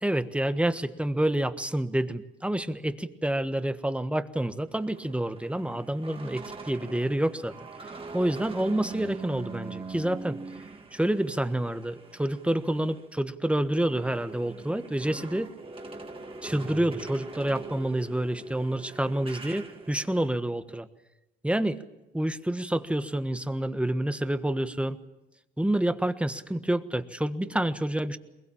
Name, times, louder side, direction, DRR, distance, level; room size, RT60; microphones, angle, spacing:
voice 1, 0.0-7.5 8.1-10.4 10.9-15.5 16.4-20.9 21.4-21.8 22.1-25.0 25.6-28.2, right 1 dB, 5° right, 10 dB, 1.3 m, -28 dB
sound 1, 4.7-13.1 13.4-20.3, right 3 dB, 25° right, 2.5 m, -42 dB
22.5 x 21.5 x 7.3 m, 0.99 s
cardioid pair, 90°, 20 cm